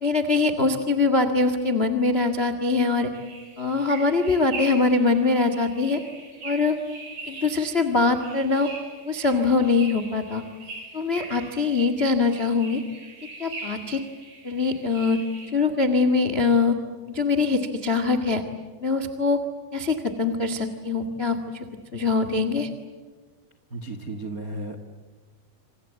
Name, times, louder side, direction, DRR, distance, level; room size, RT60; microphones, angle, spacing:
voice 1, 0.0-3.1 3.6-6.0 6.4-6.7 7.3-8.7 9.0-10.4 10.9-12.8 13.4-14.0 14.4-15.2 15.5-16.7 17.1-18.4 18.8-19.4 19.7-22.7, left 3 dB, 85° left, 9 dB, 0.5 m, -23 dB
sound 1, 3.1-15.5, right 2 dB, 55° right, 6.9 m, -41 dB
voice 2, 23.7-24.8, right 2 dB, 85° right, 7 dB, 0.7 m, -34 dB
27.0 x 26.5 x 8.3 m, 1.5 s
omnidirectional pair, 4.8 m